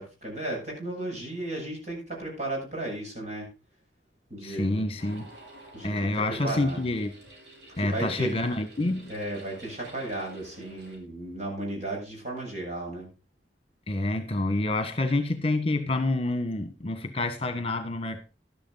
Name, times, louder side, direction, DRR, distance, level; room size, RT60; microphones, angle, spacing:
voice 1, 0.0-3.5 4.3-4.8 5.7-6.9 7.8-8.4 9.1-13.1, right 2 dB, 40° right, 7.7 m, -34 dB
voice 2, 4.4-5.3 5.8-7.1 7.8-9.1 13.9-18.2, left 2 dB, 35° left, 1.4 m, -28 dB
sound 1, 5.0-11.0, right 1 dB, 75° right, 6.2 m, -50 dB
12.5 x 11.5 x 3.9 m
head